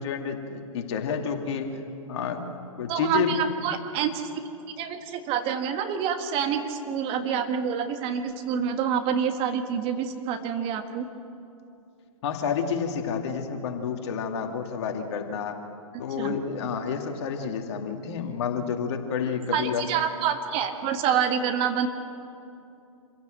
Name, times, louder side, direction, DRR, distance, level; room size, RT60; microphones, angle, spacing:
voice 1, 0.0-1.7 2.1-3.4 12.2-15.6 16.0-19.8, left 6 dB, 50° left, 4 dB, 2.4 m, -29 dB
voice 2, 2.9-4.3 4.8-11.1 16.2-16.3 19.5-21.9, right 8 dB, 30° right, 6 dB, 1.7 m, -27 dB
26.5 x 16.0 x 7.8 m, 2.7 s
figure-of-eight pair, 120°, 18 cm